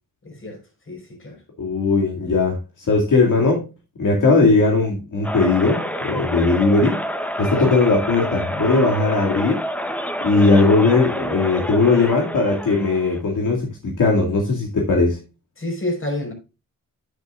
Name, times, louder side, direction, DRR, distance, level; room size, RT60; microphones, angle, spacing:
voice 1, 0.2-1.4 7.4-7.8 15.6-16.3, left 1 dB, 40° left, 5.1 m, -30 dB
voice 2, 1.6-3.7 4.0-7.0 7.4-9.6 10.2-15.2, left 3 dB, 65° left, 2.5 m, -18 dB
sound 1, 5.2-13.2, equal, 5° left, 1.0 m, -28 dB
10.5 x 9.8 x 2.5 m
cardioid pair, 95°, 33 cm